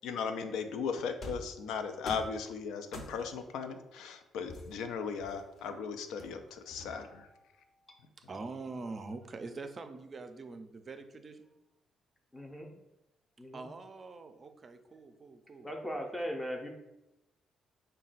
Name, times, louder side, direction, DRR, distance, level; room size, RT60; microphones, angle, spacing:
voice 1, 0.0-7.3, left 6 dB, 85° left, 8 dB, 0.4 m, -37 dB
sound 1, 1.2-1.6 2.1-2.4 2.9-3.4 4.5-5.6 6.2-7.2, left 2 dB, 55° left, 0.7 m, -45 dB
voice 2, 8.2-11.5 13.5-15.7, right 3 dB, 40° right, 8 dB, 0.4 m, -44 dB
voice 3, 12.3-12.7 13.4-13.7 15.6-16.7, equal, 10° left, 2 dB, 0.6 m, -38 dB
4.1 x 2.2 x 4.0 m, 0.93 s
cardioid pair, 90°, 0 cm